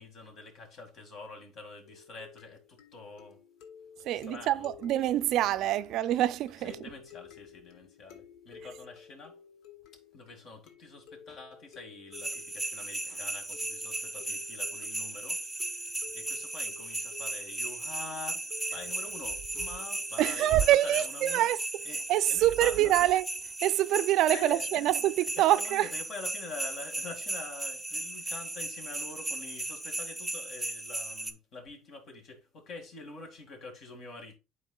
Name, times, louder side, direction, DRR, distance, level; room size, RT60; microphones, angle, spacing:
voice 1, 0.0-3.4 4.1-4.7 6.6-9.4 10.1-21.5 21.8-23.0 24.3-24.9 25.4-34.4, left 3 dB, 55° left, 2.1 m, -46 dB
sound 1, 1.8-21.0, left 8 dB, 75° left, 1.1 m, -54 dB
voice 2, 4.0-6.8 20.2-21.6 22.1-23.3 23.6-25.9, right 13 dB, 65° right, 0.4 m, -25 dB
sound 2, 12.1-31.3, right 2 dB, 5° right, 0.6 m, -36 dB
11.0 x 4.3 x 2.3 m
cardioid pair, 120°, 0 cm